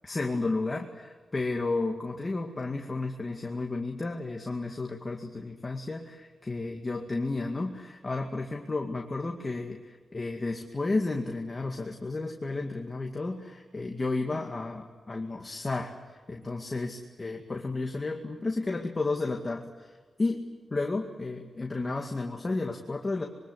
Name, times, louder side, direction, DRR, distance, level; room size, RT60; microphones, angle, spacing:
voice 1, 0.0-19.9 20.2-20.4 20.7-23.3, left 3 dB, 25° left, 2 dB, 2.2 m, -32 dB
26.5 x 23.5 x 8.2 m, 1.4 s
wide cardioid pair, 140°, 0 cm